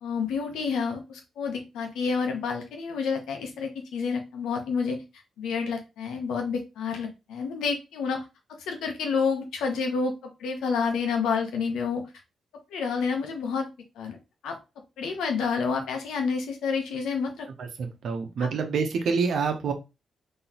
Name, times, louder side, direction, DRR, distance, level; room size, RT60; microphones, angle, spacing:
voice 1, 0.0-5.0 5.4-8.2 8.7-12.0 12.7-13.7 14.0-14.2 14.4-14.6 15.0-17.5 18.4-18.5, left 5 dB, 85° left, 4 dB, 0.9 m, -29 dB
voice 2, 17.6-19.7, right 5 dB, 75° right, 4 dB, 0.9 m, -27 dB
3.9 x 3.0 x 2.9 m, 0.27 s
supercardioid pair, 55°, 0 cm